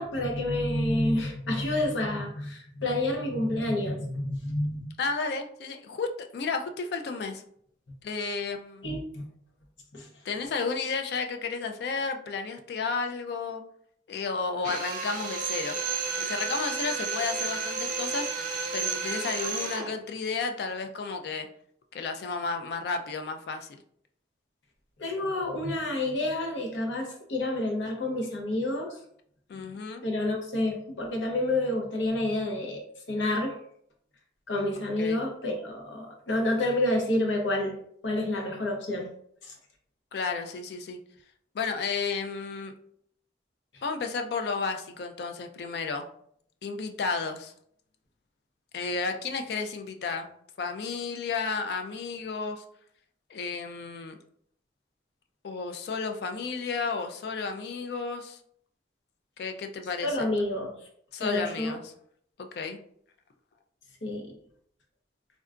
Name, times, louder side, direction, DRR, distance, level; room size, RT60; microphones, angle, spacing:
voice 1, 0.0-4.9 8.8-9.2 9.9-10.1 25.0-29.0 30.0-32.8 33.1-33.6 34.5-37.8 38.0-39.1 39.4-39.5 60.0-60.7 61.2-61.7 64.0-64.3, left 1 dB, 85° left, 1 dB, 0.7 m, -29 dB
voice 2, 5.0-7.4 8.0-8.8 10.2-13.6 14.1-15.8 16.2-18.3 18.7-21.5 21.9-23.8 29.5-30.0 35.0-35.2 40.1-41.0 41.5-42.7 43.8-46.1 46.6-47.5 48.7-50.3 50.6-52.6 53.3-54.2 55.4-58.4 59.4-60.3 61.1-61.9 62.4-62.8, left 4 dB, 60° left, 5 dB, 0.3 m, -32 dB
Drill, 14.6-19.9, right 5 dB, 45° right, 0.4 m, -32 dB
3.6 x 2.2 x 2.4 m, 0.66 s
head